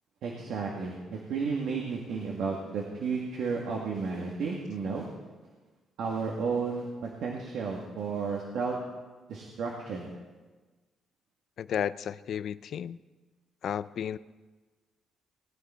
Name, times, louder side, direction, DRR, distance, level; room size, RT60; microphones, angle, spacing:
voice 1, 0.2-5.1 6.0-8.8 9.3-10.1, right 5 dB, 75° right, -1 dB, 1.9 m, -33 dB
voice 2, 11.6-13.0 13.6-14.2, left 9 dB, 65° left, 17 dB, 0.4 m, -33 dB
19.0 x 10.0 x 4.4 m, 1.3 s
cardioid pair, 90°, 0 cm